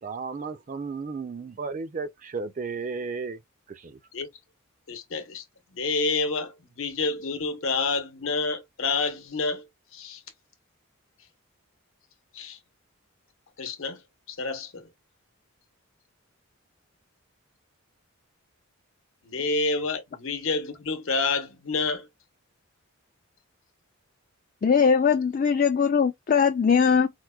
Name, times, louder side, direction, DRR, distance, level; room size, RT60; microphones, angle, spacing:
voice 1, 0.0-3.4 3.7-4.0, right 4 dB, 35° right, 0.3 m, -34 dB
voice 2, 4.9-5.4 5.7-9.7 9.9-10.2 12.3-12.6 13.6-14.0 14.3-14.9 19.2-22.1, left 3 dB, 65° left, 0.9 m, -28 dB
voice 3, 24.6-27.1, left 6 dB, 40° left, 0.3 m, -20 dB
4.5 x 2.2 x 2.2 m
head